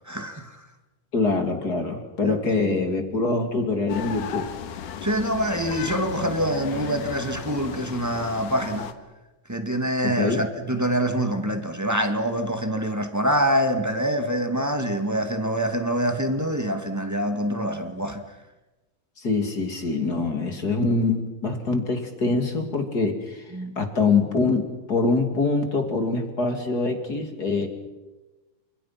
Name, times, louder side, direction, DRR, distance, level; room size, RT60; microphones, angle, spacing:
voice 1, 0.1-0.5 2.2-2.3 5.0-8.9 9.5-18.2 23.5-23.8, equal, 10° right, 1.2 m, -25 dB
voice 2, 1.1-4.5 10.0-10.4 19.2-27.7, left 3 dB, 30° left, 2.7 m, -24 dB
sound 1, 3.9-8.9, left 8 dB, 70° left, 2.9 m, -35 dB
29.5 x 27.0 x 5.9 m
omnidirectional pair, 3.9 m